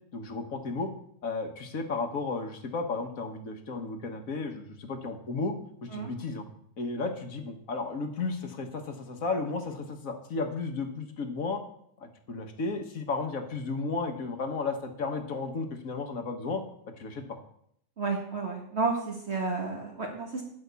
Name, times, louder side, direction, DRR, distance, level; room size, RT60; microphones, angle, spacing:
voice 1, 0.1-0.9 1.2-5.6 5.8-6.5 6.8-11.6 12.0-16.6 17.0-17.4, left 3 dB, 80° left, 5 dB, 1.8 m, -33 dB
voice 2, 18.0-20.4, right 4 dB, 50° right, 0 dB, 1.8 m, -31 dB
11.5 x 5.3 x 8.2 m, 0.69 s
omnidirectional pair, 1.4 m